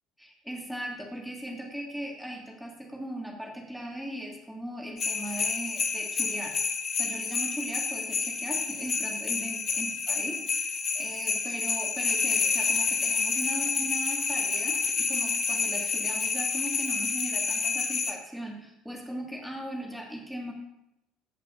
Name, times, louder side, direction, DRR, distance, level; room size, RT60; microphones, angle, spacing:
voice 1, 0.2-6.6 7.0-20.5, right 1 dB, ahead, -1 dB, 1.9 m, -38 dB
sound 1, 5.0-18.1, left 5 dB, 35° left, 0.8 m, -29 dB
14.5 x 5.4 x 2.6 m, 0.86 s
figure-of-eight pair, 60°, 0 cm